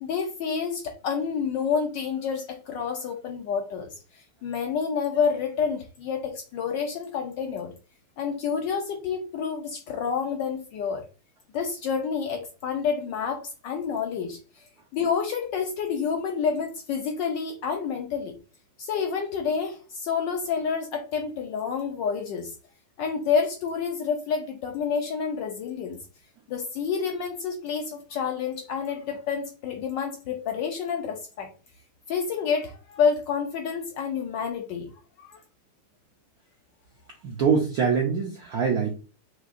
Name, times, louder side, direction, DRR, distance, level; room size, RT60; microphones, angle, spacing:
voice 1, 0.0-7.7 8.2-11.0 11.5-14.6 14.9-18.4 18.8-22.5 23.0-26.0 26.5-31.5 32.1-34.9 35.2-35.4, left 6 dB, 75° left, 1.0 m, -29 dB
voice 2, 37.2-38.9, right 6 dB, 75° right, 0.8 m, -24 dB
6.0 x 2.7 x 2.5 m
omnidirectional pair, 2.4 m